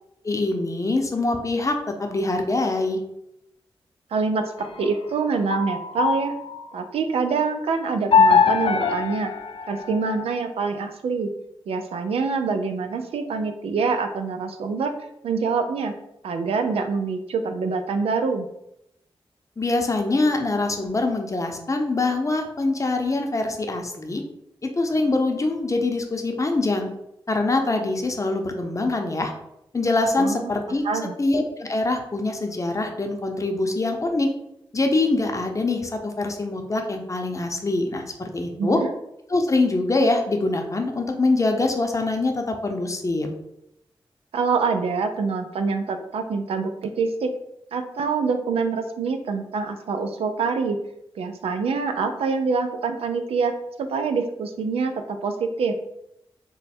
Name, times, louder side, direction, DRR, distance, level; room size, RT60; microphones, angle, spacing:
voice 1, 0.2-1.7 2.0-3.0 19.6-24.2 24.6-26.9 27.3-29.3 29.7-30.8 31.2-34.3 34.7-38.8 39.3-43.3, left 2 dB, 35° left, 3 dB, 0.7 m, -24 dB
voice 2, 4.1-6.3 6.7-9.3 9.7-11.3 11.7-14.9 15.2-15.9 16.2-18.5 30.2-30.5 30.8-31.1 38.6-38.9 44.3-47.3 47.7-50.8 51.2-53.5 53.9-55.7, right 4 dB, 85° right, 6 dB, 0.4 m, -25 dB
sound 1, 4.6-6.8 8.1-10.4, left 5 dB, 70° left, 0.4 m, -22 dB
3.1 x 2.2 x 4.2 m, 0.82 s
cardioid pair, 50°, 10 cm